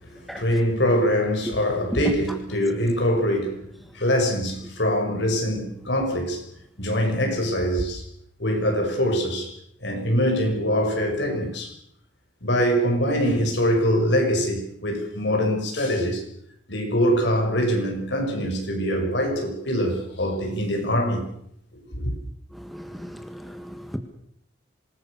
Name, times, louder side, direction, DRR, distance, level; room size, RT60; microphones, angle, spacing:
voice 1, 0.1-3.6 3.9-6.4 6.8-8.0 8.4-9.5 9.8-11.7 12.4-16.2 16.7-21.3 21.9-22.1, equal, 65° left, 6.7 m, -23 dB
voice 2, 22.6-24.0, equal, ahead, 1.7 m, -37 dB
26.0 x 20.0 x 6.8 m
head